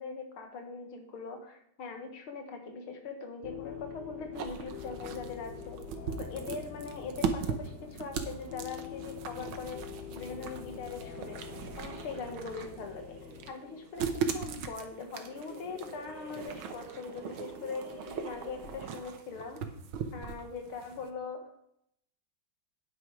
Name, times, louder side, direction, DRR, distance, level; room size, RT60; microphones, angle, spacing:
voice 1, 0.0-5.8 6.2-9.9 10.1-11.4 11.8-13.2 13.5-19.7 20.1-21.5, left 4 dB, 85° left, 4 dB, 2.5 m, -41 dB
sound 1, 3.4-13.5, left 11 dB, 70° left, 1.1 m, -45 dB
sound 2, 3.5-19.2, right 3 dB, 40° right, 2.9 m, -52 dB
sound 3, 4.3-21.1, right 6 dB, 80° right, 1.8 m, -39 dB
9.6 x 9.4 x 4.9 m, 0.72 s
omnidirectional pair, 2.3 m